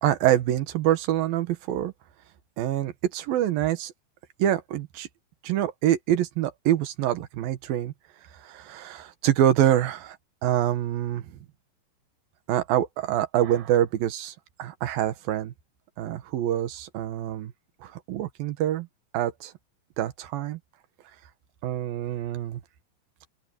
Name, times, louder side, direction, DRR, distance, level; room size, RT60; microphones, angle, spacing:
voice 1, 0.0-1.9 2.6-3.9 4.4-5.1 5.4-7.9 8.4-10.2 10.4-11.2 12.5-15.5 16.0-17.5 17.8-18.9 19.1-19.5 20.0-20.6 21.6-22.6, right 12 dB, 80° right, 3.1 m, -25 dB
open air
omnidirectional pair, 4.1 m